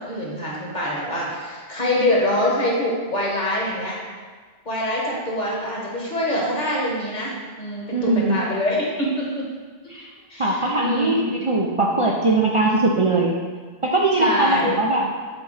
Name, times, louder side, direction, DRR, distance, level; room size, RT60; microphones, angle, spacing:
voice 1, 0.0-4.0 4.6-9.4 10.3-11.1 14.1-14.8, left 1 dB, 45° left, -4 dB, 1.5 m, -25 dB
voice 2, 7.9-8.4 9.9-10.1 10.4-13.4 13.8-15.1, right 2 dB, 40° right, -3 dB, 0.5 m, -20 dB
7.8 x 3.9 x 4.0 m, 1.5 s
omnidirectional pair, 1.1 m